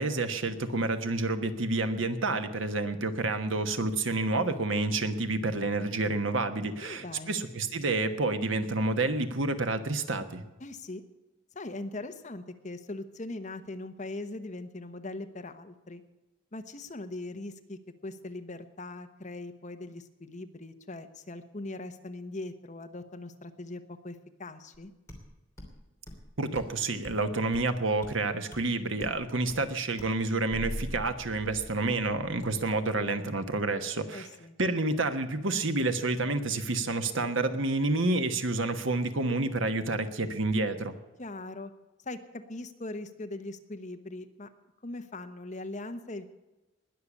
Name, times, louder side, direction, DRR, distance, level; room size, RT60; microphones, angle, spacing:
voice 1, 0.0-10.4 26.4-34.3 34.6-40.9, right 2 dB, 70° right, 9 dB, 1.3 m, -29 dB
voice 2, 6.8-7.4 10.6-11.0 11.5-16.0 16.5-24.9 34.1-34.6 41.2-41.7 42.0-44.5 44.8-46.3, left 2 dB, 35° left, 8 dB, 1.0 m, -40 dB
sound 1, 24.7-24.8 25.1-25.2 25.6-25.7 26.1-26.3 26.5-26.7 27.0-27.2 27.5-27.7 28.0-28.1 28.5-28.6 29.0-29.2 29.5-29.6 30.0-30.2, left 1 dB, 15° left, 3.0 m, -46 dB
sound 2, 30.5-32.9, equal, 45° right, 3.3 m, -41 dB
20.0 x 6.7 x 8.5 m, 1.1 s
head